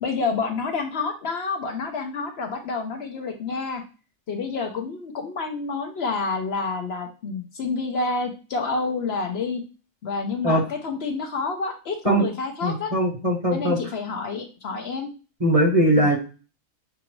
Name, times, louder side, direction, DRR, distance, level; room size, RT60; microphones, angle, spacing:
voice 1, 0.0-3.8 4.3-9.6 10.0-12.9 13.5-15.1 15.9-16.1, left 4 dB, 60° left, 4 dB, 0.9 m, -28 dB
voice 2, 12.6-13.9 15.4-16.2, right 1 dB, 30° right, 1 dB, 0.9 m, -20 dB
5.9 x 2.5 x 3.0 m, 0.34 s
omnidirectional pair, 1.3 m